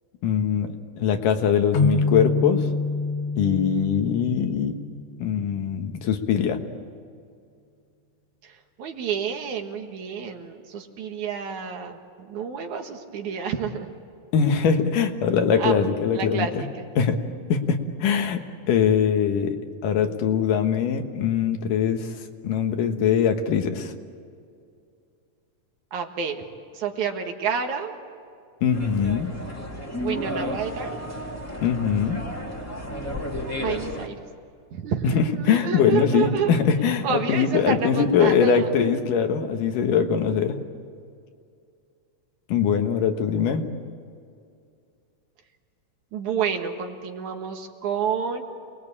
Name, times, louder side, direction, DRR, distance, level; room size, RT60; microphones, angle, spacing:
voice 1, 0.2-0.7 1.0-2.7 3.4-4.7 5.2-6.6 14.3-16.6 17.0-17.2 17.5-19.6 19.8-22.1 22.4-23.9 28.6-29.3 31.6-32.2 35.0-40.6 42.5-43.7, left 7 dB, 80° left, 6 dB, 3.0 m, -22 dB
sound 1, 1.7-5.3, left 3 dB, 60° left, 2.0 m, -26 dB
voice 2, 8.4-13.9 15.6-15.8 16.1-16.9 25.9-26.5 26.7-27.9 30.0-31.0 33.6-34.2 34.7-36.5 37.0-38.7 46.1-48.4, right 7 dB, 65° right, 4 dB, 2.9 m, -29 dB
sound 2, 28.7-34.1, left 1 dB, 5° left, 1.6 m, -32 dB
28.0 x 20.5 x 8.6 m, 2.4 s
omnidirectional pair, 3.7 m